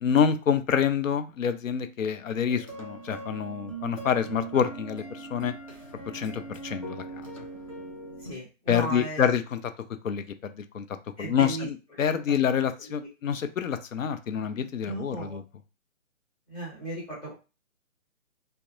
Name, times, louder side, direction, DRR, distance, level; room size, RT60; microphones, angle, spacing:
voice 1, 0.0-5.5 6.1-7.0 8.7-9.6 10.0-10.8 11.2-15.4, left 8 dB, 80° left, 8 dB, 0.6 m, -27 dB
sound 1, 2.5-8.3, right 3 dB, 30° left, 0.4 m, -40 dB
voice 2, 8.2-9.2 11.2-11.7 12.1-12.2 12.8-13.1 14.8-15.4 16.5-17.3, right 2 dB, 10° left, -6 dB, 1.2 m, -36 dB
2.3 x 2.1 x 2.9 m, 0.30 s
hypercardioid pair, 160°, 39 cm